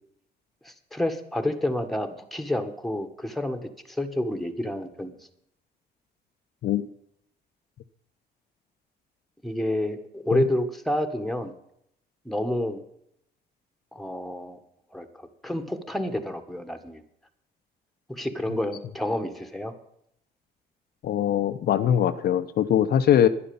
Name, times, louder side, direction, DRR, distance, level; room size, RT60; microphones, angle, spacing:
voice 1, 0.6-5.2 9.4-11.5 12.2-12.8 13.9-14.6 14.9-17.0 18.1-19.7, left 1 dB, ahead, 8 dB, 1.6 m, -29 dB
voice 2, 21.0-23.3, left 10 dB, 65° left, 9 dB, 0.8 m, -22 dB
11.5 x 10.5 x 7.1 m, 0.73 s
cardioid pair, 115°, 17 cm